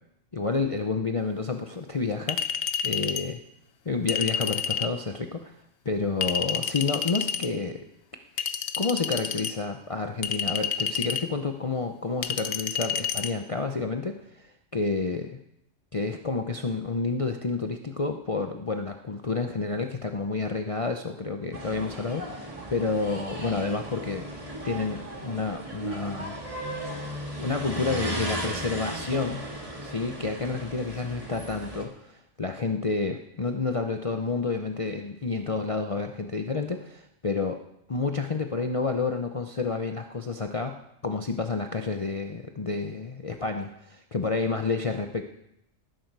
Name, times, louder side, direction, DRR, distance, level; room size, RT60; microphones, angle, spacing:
voice 1, 0.3-2.4 2.8-3.4 3.8-5.6 5.8-7.9 8.8-15.4 15.9-24.3 24.6-26.4 26.8-26.9 27.4-29.5 29.8-37.6 37.9-40.8 41.0-45.2, left 4 dB, 35° left, 4 dB, 0.7 m, -29 dB
Chink clink, 2.3-3.3 4.1-4.9 6.2-7.5 8.4-9.5 10.2-11.3 12.2-13.3, left 7 dB, 55° left, 0.9 m, -29 dB
sound 1, 21.5-31.8, right 1 dB, 30° right, 2.2 m, -36 dB
19.0 x 10.5 x 4.7 m, 0.80 s
omnidirectional pair, 1.3 m